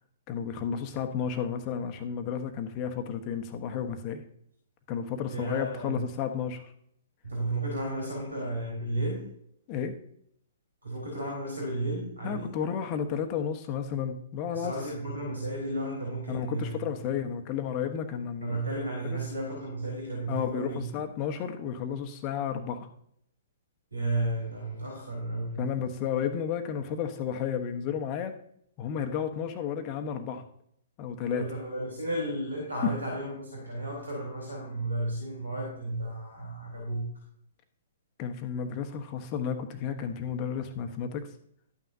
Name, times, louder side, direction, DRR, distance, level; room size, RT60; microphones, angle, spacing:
voice 1, 0.3-4.2 4.9-6.6 9.7-9.9 12.2-14.7 16.3-18.6 19.0-19.2 20.3-22.9 25.6-28.3 28.8-30.4 31.0-31.5 38.2-41.3, left 7 dB, 30° left, 7 dB, 1.2 m, -32 dB
voice 2, 5.3-6.0 7.2-9.3 10.8-12.5 14.5-16.8 18.4-20.9 23.9-25.7 31.3-37.1, right 1 dB, 75° right, -1 dB, 3.8 m, -33 dB
13.0 x 9.2 x 2.7 m, 0.69 s
figure-of-eight pair, 115°, 0 cm